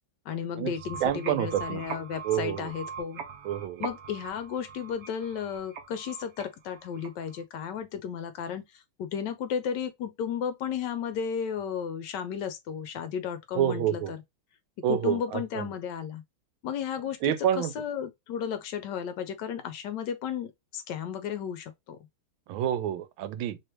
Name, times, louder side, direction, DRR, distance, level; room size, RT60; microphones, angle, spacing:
voice 1, 0.3-3.2 3.8-14.2 14.9-16.2 16.6-22.0, left 7 dB, 70° left, 1.1 m, -34 dB
sound 1, 0.6-7.4, right 6 dB, 65° right, 0.9 m, -42 dB
voice 2, 1.0-1.8 2.2-2.7 3.4-3.8 13.6-14.1 14.8-15.7 17.2-17.7 22.5-23.6, right 10 dB, 85° right, 1.4 m, -28 dB
3.2 x 3.2 x 2.9 m
omnidirectional pair, 2.2 m